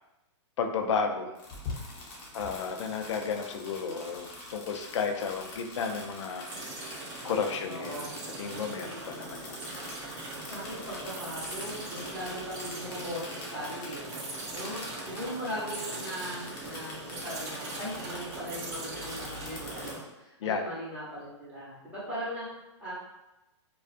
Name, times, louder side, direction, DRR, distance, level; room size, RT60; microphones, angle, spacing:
voice 1, 0.6-1.3 2.3-8.0 8.4-9.6 20.4-20.6, left 5 dB, 70° left, 4 dB, 0.4 m, -33 dB
sound 1, 1.3-19.9, left 2 dB, 30° left, 0.7 m, -44 dB
sound 2, 6.4-20.1, right 3 dB, 35° right, 0.5 m, -41 dB
voice 2, 7.6-8.1 10.3-14.0 14.5-22.5 22.8-22.9, equal, 5° right, -10 dB, 0.8 m, -39 dB
2.4 x 2.3 x 2.4 m, 0.98 s
hypercardioid pair, 145°, 16 cm